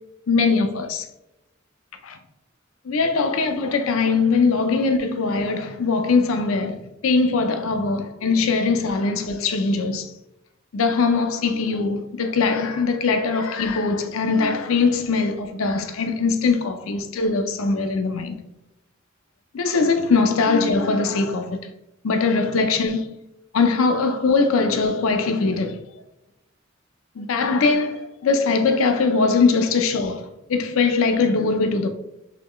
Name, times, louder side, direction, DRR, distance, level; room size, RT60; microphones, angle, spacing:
voice 1, 0.3-1.0 2.0-2.2 2.9-6.8 7.0-10.1 10.7-18.4 19.5-21.6 22.0-23.2 23.5-25.8 27.2-30.2 30.5-31.9, left 4 dB, 85° left, 0.5 m, -21 dB
4.1 x 3.1 x 3.0 m
head